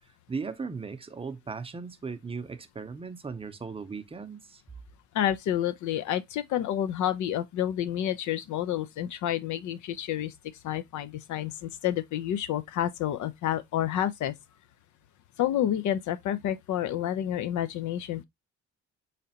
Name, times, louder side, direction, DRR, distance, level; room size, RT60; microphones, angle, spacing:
voice 1, 0.3-4.6, right 5 dB, 20° right, 0.6 m, -37 dB
voice 2, 5.1-10.3 10.6-14.3 15.4-18.2, left 11 dB, 75° left, 0.5 m, -29 dB
3.8 x 3.2 x 2.8 m
cardioid pair, 90°, 30 cm